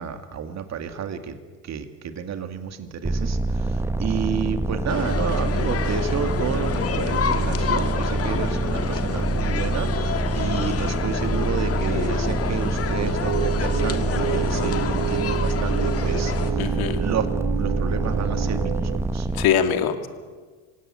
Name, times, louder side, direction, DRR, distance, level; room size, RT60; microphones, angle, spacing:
voice 1, 0.0-1.4 1.6-17.3 17.5-19.3, right 7 dB, 35° right, 8 dB, 2.3 m, -31 dB
sound 1, 3.0-19.5, right 2 dB, 5° right, 1.1 m, -26 dB
sound 2, 4.9-16.5, left 7 dB, 30° left, 1.8 m, -29 dB
sound 3, 13.0-19.0, right 17 dB, 55° right, 1.0 m, -30 dB
voice 2, 16.6-17.0 19.3-20.1, left 8 dB, 55° left, 8 dB, 2.5 m, -22 dB
27.0 x 17.0 x 9.1 m, 1.5 s
hypercardioid pair, 85°, 44 cm